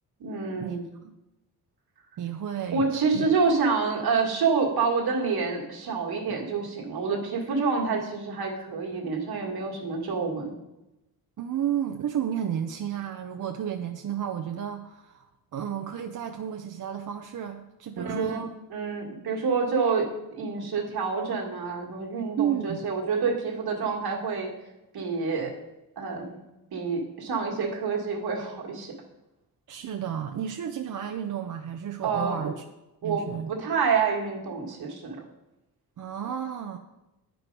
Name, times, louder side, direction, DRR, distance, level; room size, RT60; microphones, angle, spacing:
voice 1, 0.2-0.9 2.7-10.5 18.0-18.4 18.7-24.5 24.9-25.5 26.0-26.4 26.7-28.9 32.0-32.5 33.0-35.2, right 5 dB, 70° right, 0 dB, 1.7 m, -27 dB
voice 2, 2.2-3.3 11.4-15.2 15.5-18.5 22.4-22.9 25.4-25.5 29.7-32.6 33.0-33.5 36.0-36.8, right 9 dB, 55° right, 6 dB, 0.6 m, -32 dB
9.2 x 4.6 x 5.2 m, 0.97 s
cardioid pair, 90°, 38 cm